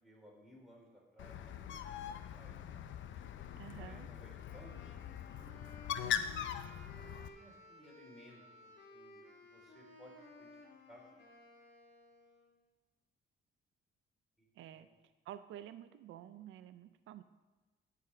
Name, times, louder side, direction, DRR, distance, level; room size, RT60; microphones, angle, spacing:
voice 1, 0.0-2.9 3.7-4.9 6.9-9.2 9.5-10.1 10.4-11.2 14.7-15.0, equal, ahead, -3 dB, 3.7 m, -60 dB
Bird, 1.2-7.3, left 9 dB, 70° left, 0.6 m, -41 dB
voice 2, 3.6-4.1 6.0-6.5 14.5-14.9 15.2-17.2, right 11 dB, 80° right, 12 dB, 0.5 m, -50 dB
Wind instrument woodwind instrument, 4.4-12.5, left 2 dB, 55° left, 2.4 m, -57 dB
13.0 x 4.9 x 5.8 m, 1.2 s
cardioid pair, 90°, 20 cm